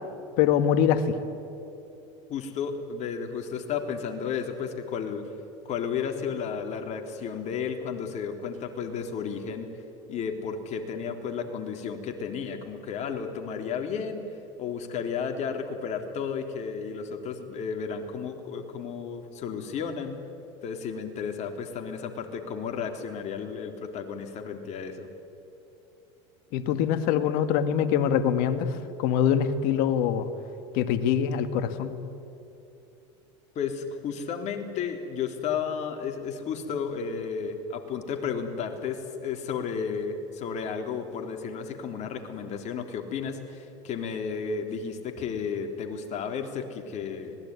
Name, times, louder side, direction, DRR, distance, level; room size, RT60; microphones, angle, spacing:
voice 1, 0.4-1.2 26.5-30.3 30.7-31.9, left 8 dB, 65° left, 10 dB, 1.9 m, -24 dB
voice 2, 2.3-5.2 5.7-9.7 10.1-14.2 14.6-20.2 20.6-25.1 33.6-47.4, left 6 dB, 50° left, 4 dB, 3.6 m, -33 dB
25.5 x 20.0 x 9.7 m, 2.7 s
supercardioid pair, 95°, 15 cm